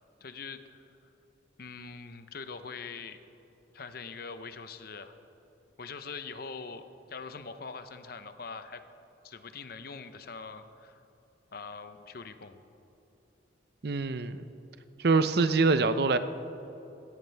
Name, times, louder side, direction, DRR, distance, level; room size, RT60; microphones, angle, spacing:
voice 1, 0.2-0.8 1.6-3.2 3.7-5.2 5.8-8.8 9.2-11.0 11.5-12.6, left 5 dB, 55° left, 10 dB, 0.7 m, -43 dB
voice 2, 13.8-14.5 15.0-16.2, right 3 dB, 55° right, 11 dB, 0.6 m, -24 dB
17.0 x 16.0 x 3.4 m, 3.0 s
head